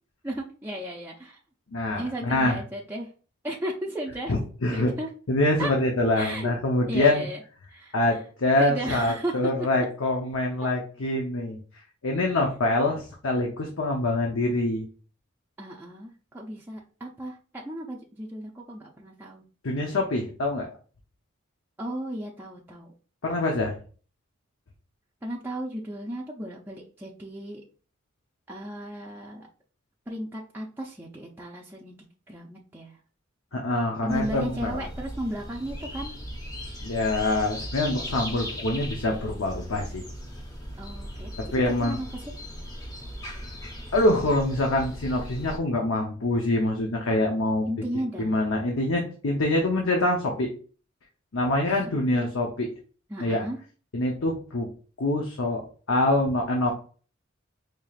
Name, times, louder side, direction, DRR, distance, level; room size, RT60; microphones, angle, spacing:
voice 1, 0.2-1.4 1.9-3.1 3.4-4.3 4.7-5.1 5.6-5.7 6.1-6.6 6.9-7.4 7.7-8.2 8.6-9.5 12.3-12.4 15.6-19.5 21.8-22.9 25.2-27.6 28.5-29.5 30.1-32.0 32.3-33.0 34.0-36.1 40.8-42.2 47.7-48.3 52.1-52.2 53.1-53.6, right 1 dB, 10° right, -3 dB, 0.4 m, -35 dB
voice 2, 1.7-2.6 4.3-4.9 5.3-7.2 7.9-11.6 12.0-14.9 19.6-20.7 23.2-23.7 33.5-34.8 36.8-40.0 41.4-42.0 43.9-47.7 48.2-50.5 51.3-52.7 53.2-53.4 53.9-54.7 55.0-55.6 55.9-56.7, left 2 dB, 90° left, 1 dB, 0.8 m, -25 dB
sound 1, 34.1-45.6, equal, 20° left, 0.7 m, -38 dB
4.8 x 2.9 x 2.4 m, 0.39 s
head